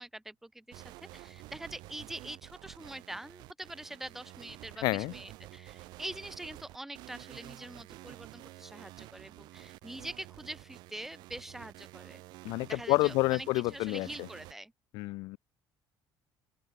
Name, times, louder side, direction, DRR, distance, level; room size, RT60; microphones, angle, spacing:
voice 1, 0.0-12.2 12.7-14.7, right 1 dB, 5° right, 2.9 m, -44 dB
sound 1, 0.7-14.5, right 19 dB, 70° right, 2.9 m, -50 dB
voice 2, 4.8-5.1 12.4-14.1 14.9-15.4, left 22 dB, 80° left, 1.2 m, -29 dB
open air
cardioid pair, 155°, 7 cm